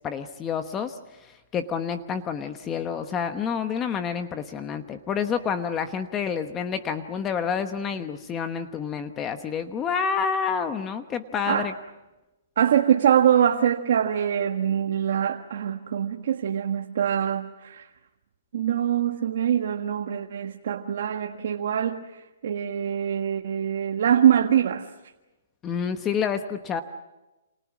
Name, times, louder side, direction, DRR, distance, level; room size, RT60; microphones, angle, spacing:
voice 1, 0.0-11.7 25.6-26.8, left 6 dB, 15° left, 8 dB, 1.0 m, -29 dB
voice 2, 12.6-17.8 18.5-24.9, right 9 dB, 55° right, 4 dB, 1.6 m, -23 dB
29.5 x 27.5 x 6.1 m, 1.0 s
hypercardioid pair, 170°, 0 cm